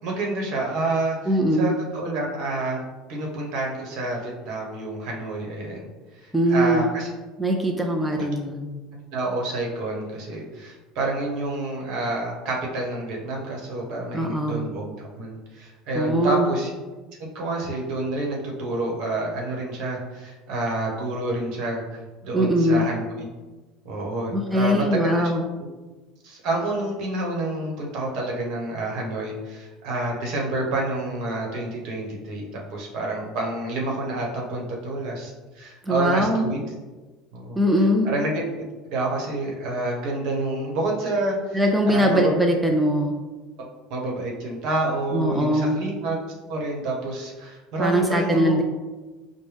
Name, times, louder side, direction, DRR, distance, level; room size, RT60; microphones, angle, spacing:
voice 1, 0.0-2.8 3.1-5.9 6.2-7.1 8.1-8.2 9.1-16.7 17.3-23.3 23.8-25.3 26.2-36.6 37.3-37.6 38.0-38.4 38.9-42.3 43.9-46.2 46.5-48.5, right 2 dB, 65° right, -1 dB, 1.0 m, -28 dB
voice 2, 1.3-1.7 6.3-6.9 7.4-8.7 14.1-14.6 16.0-16.5 22.3-22.9 24.3-25.4 35.9-36.4 37.6-38.1 41.5-43.1 45.1-45.8 47.8-48.6, equal, 5° right, 1 dB, 0.4 m, -21 dB
4.8 x 2.1 x 3.3 m, 1.2 s
supercardioid pair, 115°, 0 cm